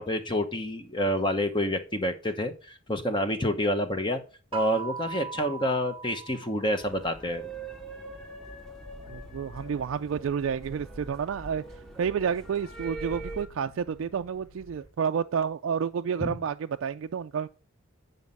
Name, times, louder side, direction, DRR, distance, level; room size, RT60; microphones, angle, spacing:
voice 1, 0.0-4.2 4.5-7.4 16.2-16.3, equal, 20° left, 0.9 m, -28 dB
sound 1, 4.5-7.2, right 5 dB, 25° right, 0.7 m, -38 dB
sound 2, 6.8-13.5, right 3 dB, 5° left, 1.1 m, -42 dB
sound 3, 9.0-14.9, left 1 dB, 65° left, 3.5 m, -56 dB
voice 2, 9.1-11.6 12.0-17.5, right 7 dB, 70° right, 0.3 m, -30 dB
9.4 x 5.4 x 5.4 m
head